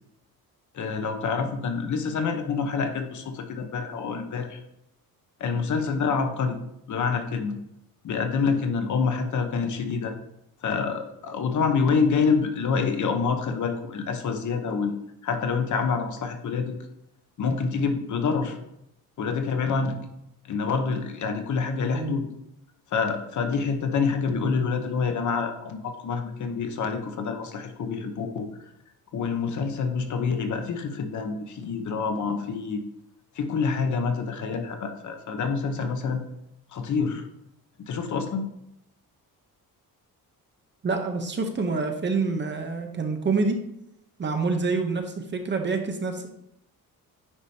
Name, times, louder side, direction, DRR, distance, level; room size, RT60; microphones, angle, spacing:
voice 1, 0.7-4.6 5.4-6.6 6.9-7.6 8.0-10.1 10.6-15.0 15.2-16.7 17.4-18.6 19.2-20.0 20.5-22.2 22.9-28.5 29.1-32.8 33.3-36.2 36.7-37.3 37.9-38.5, left 5 dB, 55° left, 6 dB, 1.0 m, -27 dB
voice 2, 40.8-43.6 44.2-46.3, right 4 dB, 30° right, 4 dB, 0.9 m, -27 dB
9.8 x 5.0 x 2.8 m, 0.82 s
cardioid pair, 145°, 36 cm